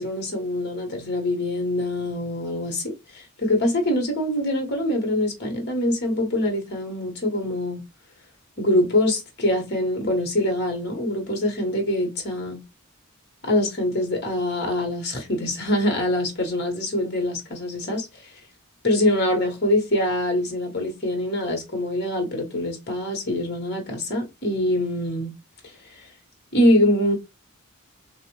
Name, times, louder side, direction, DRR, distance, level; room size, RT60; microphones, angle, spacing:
voice 1, 0.0-7.8 8.6-12.6 13.4-18.1 18.8-25.3 25.6-25.7 26.5-27.1, left 1 dB, 50° left, 1.2 m, -24 dB
3.5 x 2.4 x 3.0 m
head